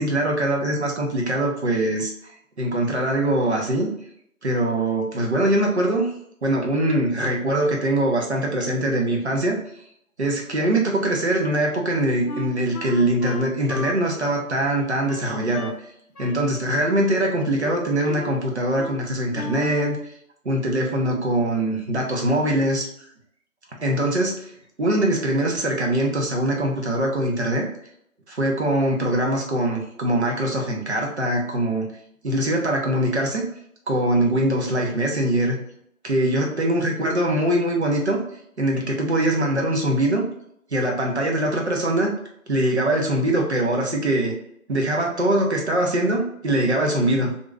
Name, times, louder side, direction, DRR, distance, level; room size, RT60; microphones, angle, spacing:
voice 1, 0.0-2.1 2.6-3.9 4.4-6.1 6.4-9.6 10.2-15.7 16.2-20.1 20.4-22.9 23.8-24.5 24.8-27.7 28.3-31.9 32.2-33.4 33.9-35.6 36.0-38.2 38.6-40.2 40.7-42.1 42.5-44.3 44.7-47.3, right 1 dB, 50° right, 0 dB, 0.8 m, -22 dB
Wind instrument woodwind instrument, 12.3-15.8 16.1-16.4 16.7-17.4 17.6-18.4 18.8-19.0 19.3-20.0, left 1 dB, 90° left, 0.7 m, -35 dB
2.9 x 2.6 x 2.2 m, 0.72 s
figure-of-eight pair, 155°, 44 cm